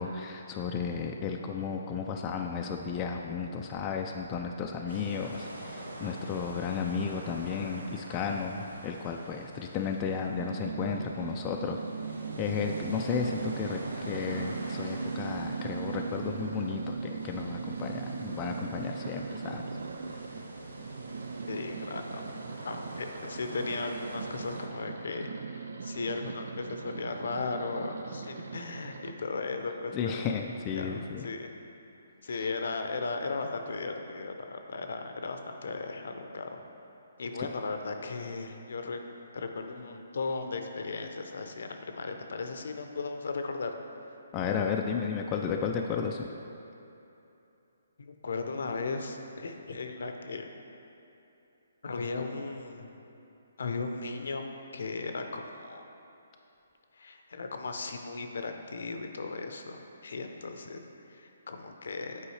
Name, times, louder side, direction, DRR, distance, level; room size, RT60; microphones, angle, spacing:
voice 1, 0.0-11.8 12.4-19.6 29.9-31.3 32.3-32.5 44.3-46.3, left 6 dB, 25° left, 2 dB, 0.3 m, -33 dB
sound 1, 4.9-24.7, right 1 dB, 90° right, 0.8 m, -45 dB
sound 2, 10.4-29.1, right 5 dB, 70° right, 0.3 m, -39 dB
voice 2, 21.5-22.2 22.6-30.2 30.7-31.5 32.2-36.7 37.2-39.0 39.3-43.7 48.0-50.5 51.8-52.9 53.6-54.4 54.7-55.8 56.9-60.8 61.1-62.2, left 3 dB, 70° left, 5 dB, 0.6 m, -36 dB
8.5 x 4.6 x 3.2 m, 2.8 s
hypercardioid pair, 145°, 0 cm